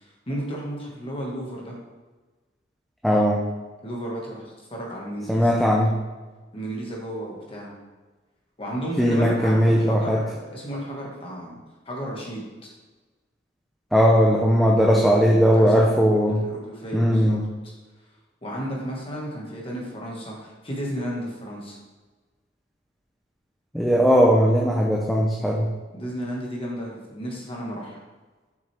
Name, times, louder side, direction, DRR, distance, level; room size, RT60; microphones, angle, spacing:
voice 1, 0.0-1.8 3.8-5.6 6.5-7.7 8.6-11.6 11.8-12.7 14.8-16.0 16.2-17.4 18.4-21.8 25.9-28.0, equal, 30° left, -3 dB, 1.7 m, -33 dB
voice 2, 3.0-3.4 5.3-5.9 9.0-10.2 13.9-16.4 16.9-17.4 23.7-25.7, equal, ahead, -3 dB, 0.6 m, -18 dB
6.9 x 6.1 x 3.4 m, 1.3 s
head